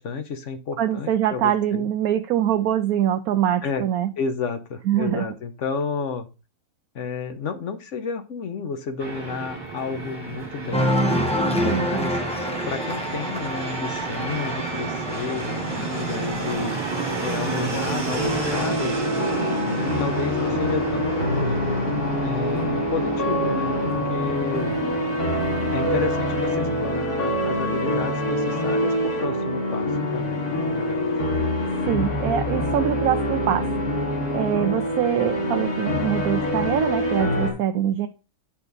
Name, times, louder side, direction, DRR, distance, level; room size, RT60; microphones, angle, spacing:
voice 1, 0.0-1.9 3.6-3.8 4.2-6.3 6.9-10.9 11.5-12.2 12.6-16.7 17.2-19.0 19.7-21.6 22.2-24.8 25.7-31.1, left 5 dB, 60° left, 9 dB, 1.2 m, -31 dB
voice 2, 0.8-4.1 4.9-5.3 11.6-12.1 31.9-33.7 34.3-38.1, right 11 dB, 75° right, 6 dB, 1.1 m, -24 dB
Fixed-wing aircraft airplane, 9.0-27.0, right 4 dB, 30° right, 2.1 m, -32 dB
Cheering, 10.7-17.7, equal, 5° left, 1.1 m, -28 dB
sound 1, 18.2-37.5, left 1 dB, 85° left, 2.5 m, -25 dB
9.9 x 4.2 x 4.0 m, 0.32 s
omnidirectional pair, 1.6 m